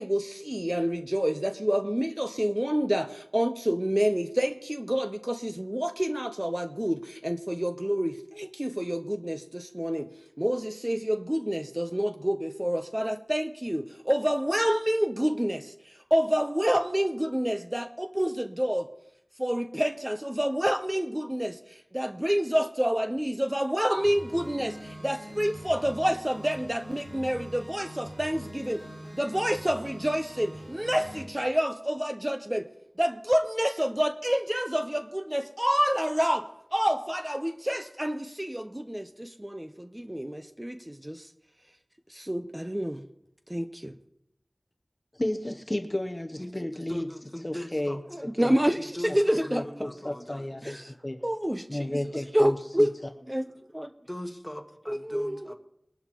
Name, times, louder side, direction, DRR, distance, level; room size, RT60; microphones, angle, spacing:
voice 1, 0.0-18.9 19.3-28.9 29.1-32.7 33.0-41.3 42.1-43.0 43.5-44.0 48.1-49.6 50.6-50.9 51.2-52.9 53.3-53.5 53.7-53.9 54.9-55.6, equal, 15° right, 0.6 m, -28 dB
sound 1, 24.0-31.3, equal, 75° right, 5.2 m, -43 dB
voice 2, 45.2-47.0 47.4-48.5 49.5-50.8 51.0-51.2 51.7-52.9, left 1 dB, 30° left, 0.8 m, -32 dB
voice 3, 46.4-48.0 48.7-50.8 54.0-55.6, left 1 dB, 15° left, 1.5 m, -41 dB
21.5 x 11.0 x 3.0 m
wide cardioid pair, 50°, 0 cm